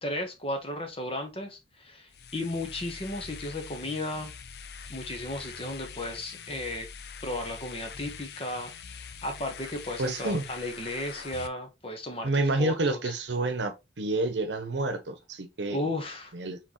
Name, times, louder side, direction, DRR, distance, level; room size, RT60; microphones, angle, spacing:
voice 1, 0.0-4.3 4.9-6.9 7.2-13.1 15.7-16.3, left 1 dB, 35° left, 1.1 m, -35 dB
sound 1, 2.1-11.5, left 6 dB, 65° left, 0.6 m, -44 dB
voice 2, 10.0-10.4 12.2-15.8 16.3-16.6, right 2 dB, 85° right, 0.8 m, -29 dB
4.5 x 3.9 x 2.9 m
head